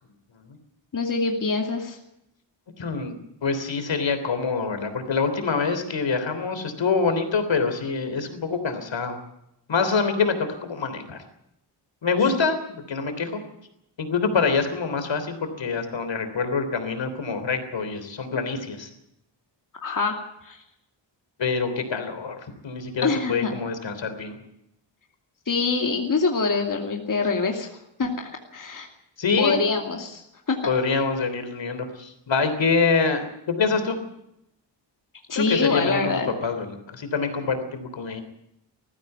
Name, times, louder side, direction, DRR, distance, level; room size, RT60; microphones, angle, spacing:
voice 1, 0.9-2.0 19.8-20.2 20.4-20.6 23.0-23.5 25.5-27.7 28.0-28.9 29.4-30.6 35.3-36.3, left 4 dB, 45° left, 2 dB, 2.5 m, -25 dB
voice 2, 2.8-3.1 3.4-9.2 9.7-11.2 12.0-13.4 14.0-18.9 21.4-24.4 29.2-29.6 30.6-34.0 35.3-36.1 36.4-38.2, left 4 dB, 75° left, 8 dB, 3.4 m, -25 dB
19.5 x 15.0 x 9.1 m, 0.82 s
wide cardioid pair, 150°, 44 cm